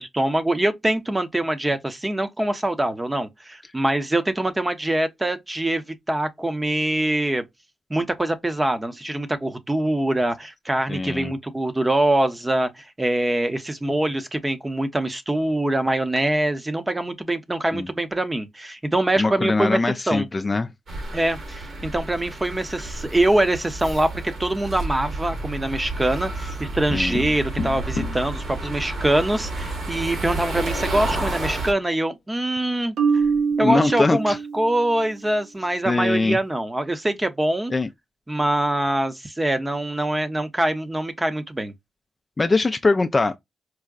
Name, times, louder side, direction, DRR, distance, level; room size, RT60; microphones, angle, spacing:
voice 1, 0.0-7.4 7.9-19.8 20.1-20.3 21.1-24.1 24.4-33.2 33.6-37.7 38.3-41.7, right 1 dB, 15° right, 0.7 m, -24 dB
voice 2, 10.9-11.3 17.7-17.9 19.2-20.7 26.9-27.2 33.6-34.4 35.8-36.4 37.7-37.9 42.4-43.4, left 3 dB, 30° left, 0.3 m, -22 dB
sound 1, 20.9-31.7, right 2 dB, 65° right, 1.6 m, -31 dB
Tap, 26.6-28.3 30.3-31.1, left 4 dB, 70° left, 0.7 m, -32 dB
Marimba xylophone, 33.0-35.0, right 5 dB, 80° right, 0.7 m, -24 dB
4.6 x 2.1 x 2.3 m
cardioid pair, 80°, 0 cm